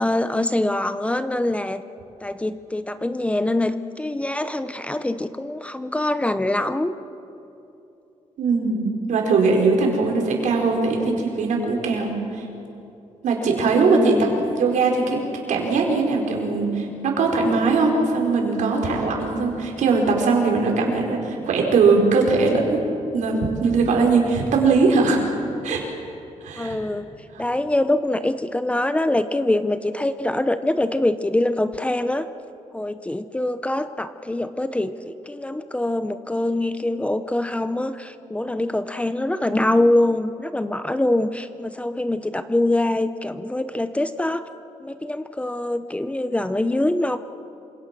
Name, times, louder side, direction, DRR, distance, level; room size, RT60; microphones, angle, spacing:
voice 1, 0.0-1.8 2.2-6.9 13.7-14.4 26.6-27.1 27.4-32.3 32.7-44.4 44.8-47.2, left 1 dB, 10° left, 11 dB, 0.8 m, -24 dB
voice 2, 8.4-12.4 13.2-14.1 14.5-15.2 15.5-22.8 23.1-25.3 25.6-25.8 26.4-26.8 27.3-27.4, right 4 dB, 80° right, 1 dB, 5.0 m, -20 dB
27.5 x 26.0 x 6.2 m, 2.8 s
cardioid pair, 130°, 13 cm